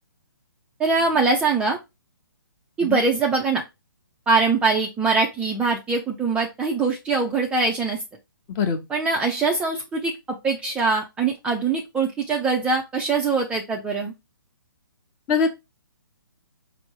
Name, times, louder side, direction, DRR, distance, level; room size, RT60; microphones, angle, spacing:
voice 1, 0.8-1.8 2.8-3.6 4.3-8.0 8.9-14.1, right 4 dB, 10° right, 0 dB, 0.5 m, -23 dB
voice 2, 2.8-3.0 8.6-8.8 15.3-15.5, left 5 dB, 20° left, 5 dB, 0.8 m, -22 dB
5.2 x 2.0 x 4.5 m, 0.23 s
hypercardioid pair, 140°, 12 cm